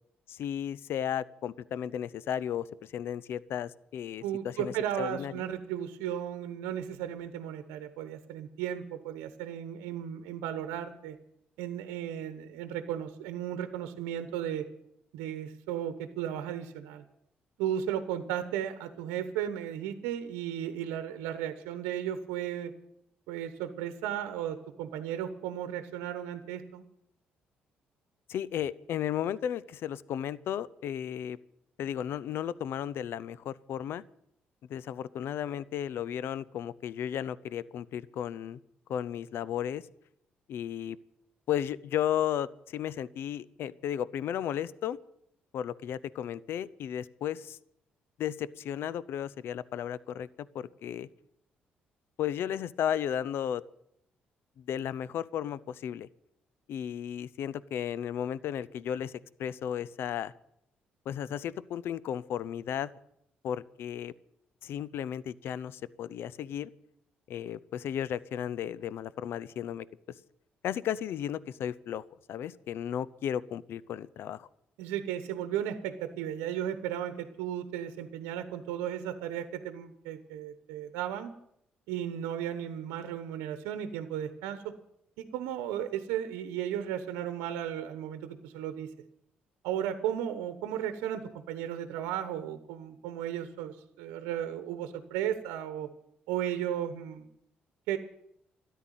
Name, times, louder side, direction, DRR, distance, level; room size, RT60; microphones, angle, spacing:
voice 1, 0.3-5.4 28.3-31.4 31.8-34.0 34.7-38.6 38.9-39.9 40.5-41.0 41.5-45.0 45.5-47.6 48.2-51.1 52.2-53.6 54.6-56.1 56.7-60.3 61.1-62.9 63.4-64.1 64.6-66.7 67.3-69.9 70.6-74.5, left 10 dB, 70° left, 19 dB, 0.6 m, -34 dB
voice 2, 4.2-11.2 11.6-14.6 15.1-17.0 17.6-22.7 23.3-26.8 74.8-81.3 81.9-84.6 85.2-88.9 89.6-95.9 96.3-97.3 97.9-98.0, right 10 dB, 85° right, 9 dB, 1.0 m, -35 dB
13.5 x 10.5 x 9.1 m, 0.76 s
supercardioid pair, 60°, 4 cm